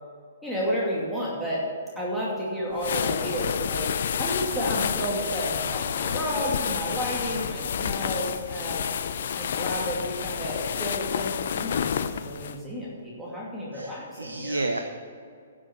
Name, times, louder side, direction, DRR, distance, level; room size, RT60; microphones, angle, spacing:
voice 1, 0.4-1.6 2.0-3.9 4.2-8.9 9.3-14.6, equal, ahead, -8 dB, 2.5 m, -31 dB
sound 1, 2.8-12.6, left 8 dB, 60° left, 0.6 m, -29 dB
voice 2, 7.2-7.6 13.7-14.8, right 2 dB, 90° right, 6 dB, 0.8 m, -31 dB
11.0 x 7.6 x 8.0 m, 2.3 s
figure-of-eight pair, 125°, 0 cm